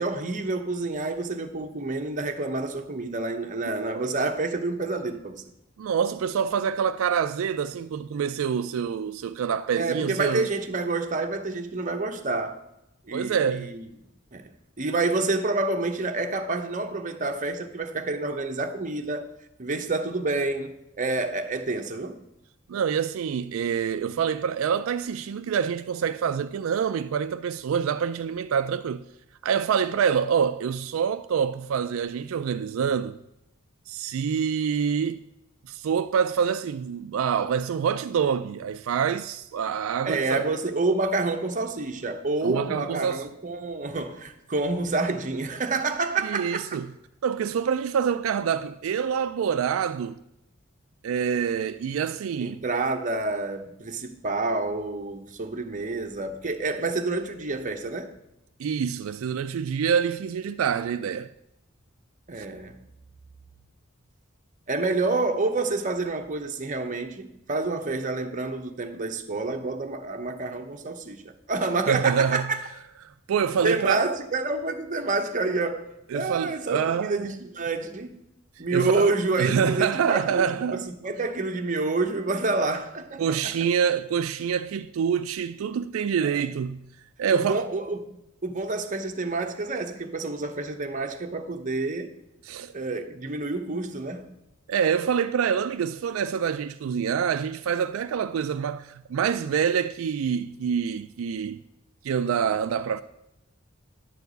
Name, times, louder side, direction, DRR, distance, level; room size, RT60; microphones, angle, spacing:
voice 1, 0.0-5.4 9.8-12.6 13.1-13.8 14.3-19.3 19.6-22.2 40.0-46.7 52.4-58.1 62.3-62.8 64.7-72.6 73.6-75.9 76.1-78.2 78.6-83.5 86.2-86.4 87.3-92.1 92.7-94.4, right 3 dB, 40° right, 0.9 m, -28 dB
voice 2, 3.8-4.1 5.8-10.5 13.1-13.7 22.7-29.1 29.4-33.2 33.9-35.2 35.7-40.4 42.4-43.3 46.2-46.9 47.2-50.2 51.0-52.6 58.6-61.3 62.4-62.5 71.9-72.5 73.0-74.1 76.1-77.4 78.7-79.1 79.4-80.9 83.2-86.9 87.2-87.7 92.4-92.7 94.7-101.6 102.0-103.0, right 7 dB, 80° right, 0.3 m, -26 dB
10.5 x 4.6 x 8.0 m
head